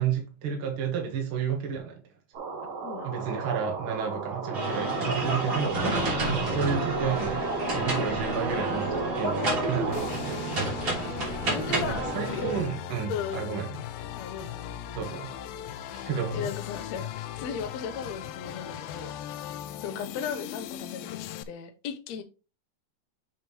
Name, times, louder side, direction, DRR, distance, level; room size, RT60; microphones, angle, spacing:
voice 1, 0.0-2.0 3.0-5.8 6.3-7.5 7.7-10.5 11.7-13.8 14.9-15.4 15.9-16.5, right 7 dB, 50° right, 1.7 m, -31 dB
sound 1, 2.3-10.1, right 4 dB, 70° right, 3.9 m, -36 dB
voice 2, 2.8-3.2 6.5-6.7 11.2-12.5 13.1-13.7 14.2-14.8 16.3-19.1 19.4-19.5 19.8-21.2 21.5-22.2, left 6 dB, 70° left, 1.7 m, -36 dB
sound 2, 4.5-12.6, right 2 dB, 35° right, 3.4 m, -29 dB
sound 3, 9.9-21.4, left 11 dB, 85° left, 2.4 m, -38 dB
7.0 x 6.2 x 3.1 m
omnidirectional pair, 4.2 m